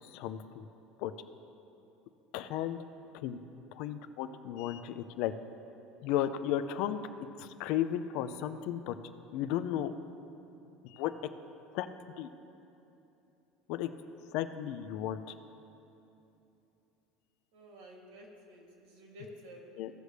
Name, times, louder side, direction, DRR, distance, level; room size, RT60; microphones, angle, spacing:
voice 1, 0.0-0.7 1.0-1.1 2.3-2.8 3.2-3.4 3.8-5.3 6.0-7.0 7.4-9.0 9.3-9.9 10.8-11.1 11.7-11.9 12.2-12.3 13.7-13.9 14.3-15.2 19.8-19.9, left 11 dB, 55° left, 11 dB, 0.4 m, -34 dB
voice 2, 17.5-19.8, equal, 90° right, -1 dB, 2.3 m, -51 dB
16.0 x 6.6 x 3.3 m, 3.0 s
cardioid pair, 180°, 0 cm